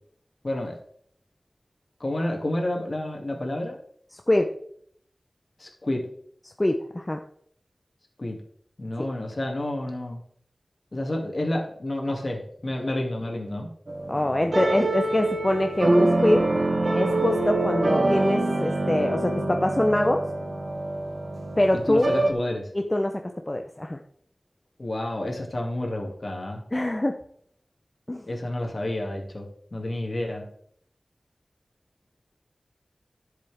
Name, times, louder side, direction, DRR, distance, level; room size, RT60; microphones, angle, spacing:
voice 1, 0.4-0.8 2.0-3.8 5.6-6.1 8.2-8.4 8.8-10.2 10.9-13.7 21.7-22.7 24.8-26.6 28.3-30.5, left 1 dB, 55° left, 1 dB, 2.4 m, -30 dB
voice 2, 6.6-7.2 14.1-16.4 16.9-20.2 21.6-22.1 22.7-24.0 26.7-27.2 28.1-28.2, left 1 dB, 25° left, 4 dB, 0.7 m, -24 dB
sound 1, 13.9-22.3, right 2 dB, 60° right, 1.2 m, -25 dB
11.0 x 7.5 x 3.5 m, 0.64 s
wide cardioid pair, 50°, 0 cm